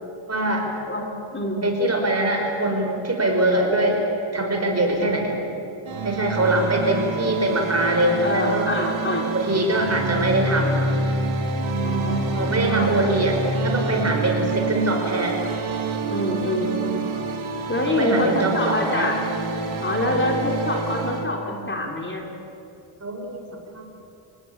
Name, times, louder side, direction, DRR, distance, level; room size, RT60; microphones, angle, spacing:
voice 1, 0.3-0.7 1.6-4.0 4.3-5.3 6.0-8.7 9.3-10.8 12.3-13.4 13.6-15.4 17.9-19.1 23.0-23.5 23.7-23.9, right 1 dB, 35° right, 2 dB, 5.2 m, -23 dB
voice 2, 0.9-1.6 8.2-9.3 11.8-12.9 14.2-14.3 16.1-17.0 17.7-19.2 19.8-22.2, left 1 dB, 25° left, 1 dB, 3.5 m, -26 dB
sound 1, 5.9-21.2, right 3 dB, 85° right, 3.2 m, -27 dB
27.5 x 18.0 x 8.9 m, 2.7 s
cardioid pair, 115°, 46 cm